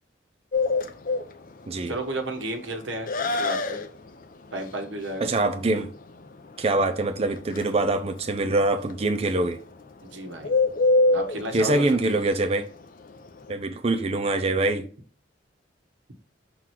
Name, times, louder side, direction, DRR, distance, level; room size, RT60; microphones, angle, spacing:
Bird, 0.5-13.5, left 3 dB, 45° left, 0.6 m, -28 dB
voice 1, 1.9-3.8 4.5-5.5 10.0-10.5 11.1-12.2, right 2 dB, 85° right, 1.3 m, -33 dB
voice 2, 5.2-5.9 6.6-9.6 11.5-12.7 13.5-14.9, right 2 dB, 30° right, 0.5 m, -24 dB
6.2 x 3.8 x 4.5 m
head